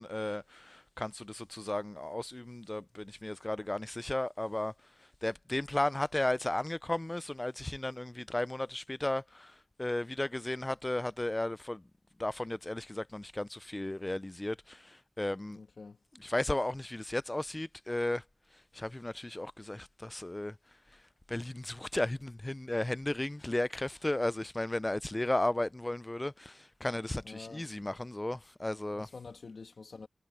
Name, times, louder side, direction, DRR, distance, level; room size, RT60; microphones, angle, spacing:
voice 1, 0.0-4.7 5.2-9.5 9.8-11.8 12.2-15.6 16.2-18.2 18.7-20.5 21.3-29.1, left 1 dB, 20° left, 0.3 m, -34 dB
voice 2, 15.5-16.0 27.2-27.7 28.9-30.1, left 4 dB, 65° left, 2.1 m, -47 dB
wide cardioid pair, 110°, 0 cm